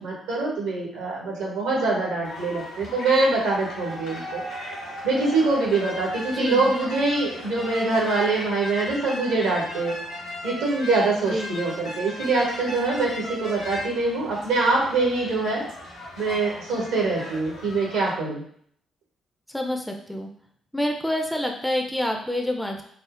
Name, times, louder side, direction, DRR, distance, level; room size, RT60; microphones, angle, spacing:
voice 1, 0.0-4.4 5.0-9.9 10.4-15.6 16.2-18.4, right 3 dB, 70° right, -3 dB, 0.8 m, -24 dB
sound 1, 2.2-18.1, left 1 dB, 65° left, 1.0 m, -37 dB
voice 2, 6.3-6.7 11.2-11.6 19.5-20.3 20.7-22.8, left 1 dB, 5° left, 2 dB, 0.4 m, -27 dB
3.5 x 2.0 x 2.4 m, 0.64 s
figure-of-eight pair, 40°, 0 cm